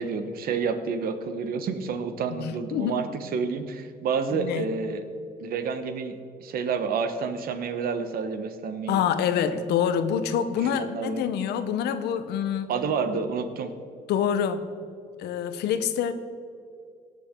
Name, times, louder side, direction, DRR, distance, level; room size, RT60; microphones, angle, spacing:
voice 1, 0.0-5.0 5.4-6.1 6.4-9.0 9.5-9.6 10.6-11.2 12.7-13.7, right 5 dB, 60° right, 9 dB, 1.1 m, -29 dB
voice 2, 2.4-3.0 4.3-4.7 8.9-12.7 14.1-14.7 15.2-16.1, left 8 dB, 75° left, 11 dB, 0.9 m, -26 dB
17.5 x 6.8 x 3.8 m, 2.5 s
cardioid pair, 110°, 17 cm